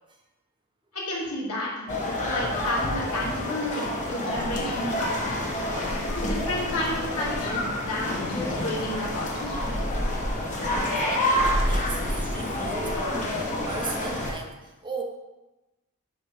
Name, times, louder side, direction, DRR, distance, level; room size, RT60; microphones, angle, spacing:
voice 1, 0.9-5.1 6.1-9.8, left 1 dB, 85° left, -5 dB, 2.2 m, -31 dB
sound 1, 1.9-14.3, left 1 dB, 35° left, 1.2 m, -28 dB
voice 2, 10.8-15.0, right 4 dB, 20° right, 2 dB, 0.8 m, -38 dB
7.1 x 3.6 x 5.9 m, 1.0 s
head